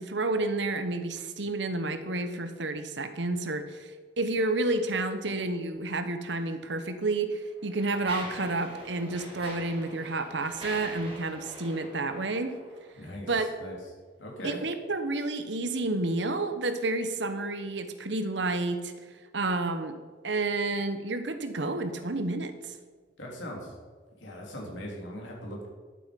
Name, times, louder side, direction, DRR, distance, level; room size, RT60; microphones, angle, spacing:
voice 1, 0.0-3.9 4.2-12.5 13.3-13.5 14.4-18.9 19.3-20.0 20.2-22.8, right 2 dB, 70° right, 9 dB, 1.1 m, -30 dB
Mechanisms, 6.4-6.6 7.3-13.0, right 1 dB, 30° right, 4.2 m, -44 dB
voice 2, 13.0-13.8 14.2-14.6 23.2-23.8 24.2-25.7, equal, 80° left, -1 dB, 3.4 m, -40 dB
11.5 x 8.7 x 5.3 m, 1.4 s
head